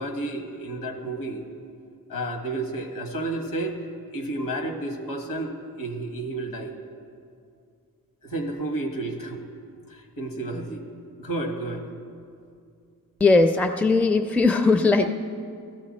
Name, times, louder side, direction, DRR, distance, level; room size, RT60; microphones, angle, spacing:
voice 1, 0.0-1.5 2.1-3.8 4.1-6.8 8.2-9.4 9.9-10.8 11.2-11.9, right 2 dB, 65° left, 3 dB, 1.7 m, -31 dB
voice 2, 13.2-15.1, left 3 dB, 5° left, 8 dB, 0.4 m, -19 dB
16.0 x 14.0 x 4.3 m, 2.4 s
wide cardioid pair, 125°, 36 cm